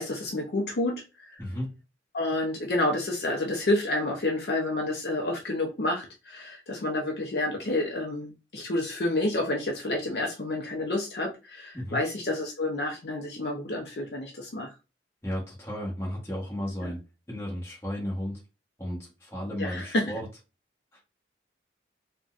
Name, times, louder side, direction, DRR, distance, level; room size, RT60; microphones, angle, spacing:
voice 1, 0.0-1.4 2.1-14.7 16.8-16.9 19.6-20.1, left 2 dB, 60° left, 0.5 m, -29 dB
voice 2, 1.4-1.8 11.7-12.0 15.2-17.0 17.3-18.4 18.8-20.3, equal, 15° left, 1.1 m, -34 dB
3.8 x 2.2 x 2.4 m
head